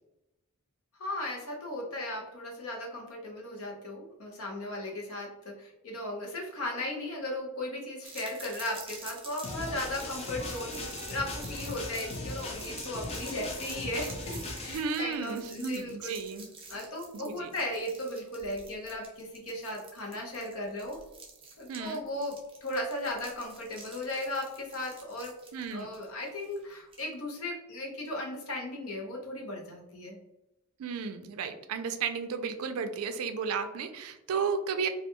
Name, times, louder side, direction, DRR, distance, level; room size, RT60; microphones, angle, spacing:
voice 1, 1.0-16.1 16.7-21.0 21.6-25.3 25.7-30.2, left 1 dB, 70° left, -1 dB, 0.8 m, -36 dB
sound 1, 8.1-27.1, right 4 dB, 25° right, 0.5 m, -49 dB
sound 2, 9.4-14.8, left 2 dB, 30° left, 0.4 m, -38 dB
voice 2, 14.7-16.5 17.2-17.5 21.7-22.0 25.5-25.9 30.8-34.9, right 5 dB, 80° right, 8 dB, 0.3 m, -33 dB
2.3 x 2.2 x 2.8 m, 0.92 s
head